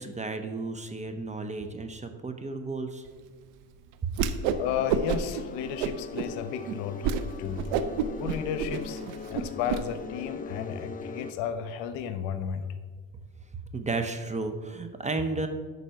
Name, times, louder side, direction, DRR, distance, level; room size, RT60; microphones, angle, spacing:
voice 1, 0.0-3.1 4.0-4.1 13.5-15.5, right 3 dB, 15° right, 7 dB, 0.7 m, -33 dB
Whoosh swoosh swish, 4.1-4.6 4.9-5.4 5.8-6.3 6.7-6.8 7.0-7.2 7.6-9.8, right 7 dB, 80° right, 0.7 m, -28 dB
sound 1, 4.4-11.3, left 5 dB, 20° left, 0.4 m, -40 dB
voice 2, 4.6-7.1 7.4-7.6 8.1-9.0 9.3-12.6, left 8 dB, 75° left, 10 dB, 0.9 m, -33 dB
10.0 x 4.1 x 5.7 m, 1.5 s
cardioid pair, 110°, 43 cm